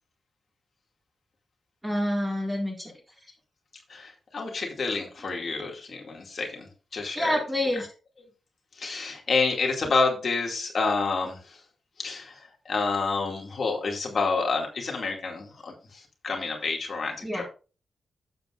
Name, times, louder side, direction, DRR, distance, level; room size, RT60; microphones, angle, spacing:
voice 1, 1.8-2.9 7.1-7.9 17.2-17.4, left 1 dB, 10° right, 1 dB, 2.0 m, -27 dB
voice 2, 3.9-6.7 6.9-7.3 8.8-11.4 12.0-12.3 12.7-15.7 16.2-17.4, left 4 dB, 40° left, 1 dB, 2.3 m, -28 dB
12.0 x 7.9 x 2.5 m, 0.35 s
wide cardioid pair, 175°, 0 cm